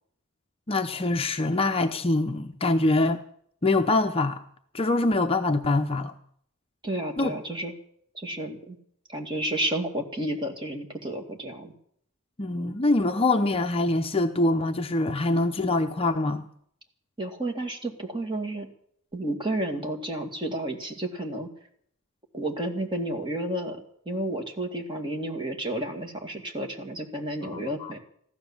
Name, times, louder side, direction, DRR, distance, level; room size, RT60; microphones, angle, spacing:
voice 1, 0.7-3.2 3.6-4.4 4.7-6.1 7.2-7.4 12.4-16.5 27.5-27.9, left 2 dB, 25° left, 6 dB, 0.7 m, -24 dB
voice 2, 6.8-7.7 8.1-8.8 9.1-11.7 17.2-18.7 19.1-21.5 22.3-23.8 24.1-28.0, right 1 dB, 20° right, 3 dB, 2.2 m, -31 dB
15.0 x 12.0 x 7.3 m, 0.66 s
head